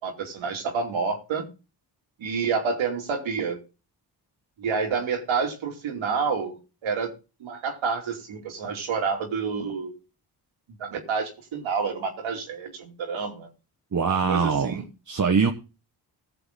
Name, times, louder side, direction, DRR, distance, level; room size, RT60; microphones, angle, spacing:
voice 1, 0.0-1.4 2.2-3.6 4.6-6.6 6.8-7.1 7.4-9.9 10.8-13.5 14.3-14.8, right 5 dB, 70° right, 3.0 m, -28 dB
voice 2, 13.9-15.5, right 5 dB, 35° right, 1.5 m, -23 dB
17.5 x 6.9 x 3.9 m
hypercardioid pair, 40°, 48 cm